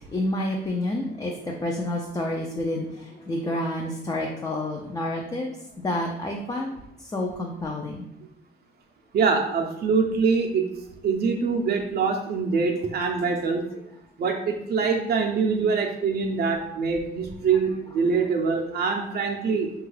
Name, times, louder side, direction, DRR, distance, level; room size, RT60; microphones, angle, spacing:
voice 1, 0.1-6.8 7.1-8.1, left 1 dB, 20° left, 0 dB, 0.4 m, -29 dB
voice 2, 9.1-10.7 11.0-13.6 14.2-19.7, right 5 dB, 55° right, 1 dB, 0.5 m, -24 dB
3.2 x 2.3 x 3.2 m, 0.82 s
cardioid pair, 90°, 20 cm